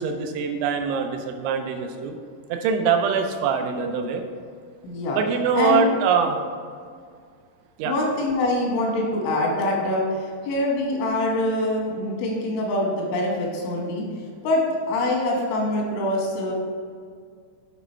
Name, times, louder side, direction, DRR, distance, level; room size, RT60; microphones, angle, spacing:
voice 1, 0.0-2.2 2.5-4.2 5.1-6.4 7.8-7.9, right 6 dB, 85° right, 5 dB, 2.9 m, -23 dB
voice 2, 4.8-5.2 5.6-5.9 7.9-14.1 14.4-16.5, left 1 dB, 90° left, -1 dB, 3.7 m, -24 dB
9.7 x 3.4 x 4.4 m, 2.1 s
omnidirectional pair, 5.3 m